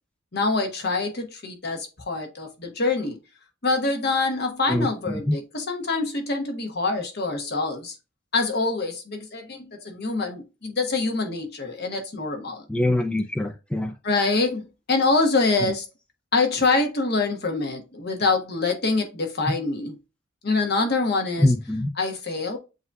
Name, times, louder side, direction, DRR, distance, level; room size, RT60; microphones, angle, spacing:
voice 1, 0.3-3.2 3.6-7.9 8.3-12.6 14.0-15.8 16.3-19.9 20.4-21.5 22.0-22.6, left 3 dB, 55° left, 1.2 m, -25 dB
voice 2, 12.7-13.9 15.6-15.7 21.4-21.9, left 1 dB, 5° left, 0.3 m, -23 dB
7.8 x 2.7 x 2.2 m
head